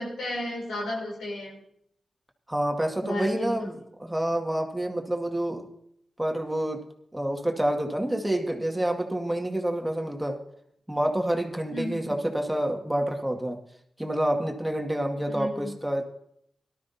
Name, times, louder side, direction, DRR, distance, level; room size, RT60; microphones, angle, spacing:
voice 1, 0.0-1.6 3.0-3.6 11.7-12.1 15.3-15.7, left 1 dB, 90° left, -1 dB, 3.7 m, -33 dB
voice 2, 2.5-5.7 6.2-6.8 7.1-10.4 10.9-13.6 14.0-16.1, right 1 dB, 10° right, 3 dB, 2.0 m, -28 dB
18.0 x 12.5 x 2.8 m, 0.70 s
cardioid pair, 45°, 0 cm